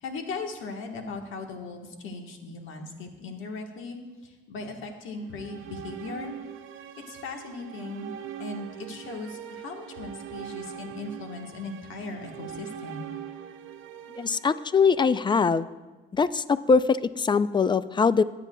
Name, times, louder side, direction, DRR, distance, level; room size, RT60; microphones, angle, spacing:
voice 1, 0.0-6.4 7.0-8.1 8.4-13.1, left 3 dB, 80° left, 3 dB, 1.3 m, -38 dB
sound 1, 5.2-15.4, right 10 dB, 85° right, 0.6 m, -42 dB
voice 2, 14.2-15.7 16.1-18.2, left 5 dB, 25° left, 15 dB, 0.3 m, -22 dB
17.5 x 8.4 x 2.3 m, 1.2 s
cardioid pair, 90°, 20 cm